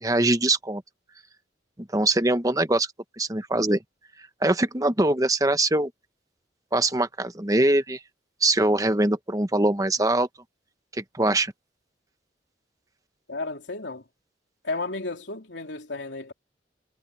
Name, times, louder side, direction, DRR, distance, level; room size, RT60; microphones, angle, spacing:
voice 1, 0.0-0.8 1.9-2.9 3.2-3.8 4.4-5.9 6.7-8.0 8.4-10.3 10.9-11.5, right 2 dB, 20° right, 1.0 m, -22 dB
voice 2, 13.3-14.0 14.6-16.3, left 3 dB, 80° left, 3.1 m, -33 dB
head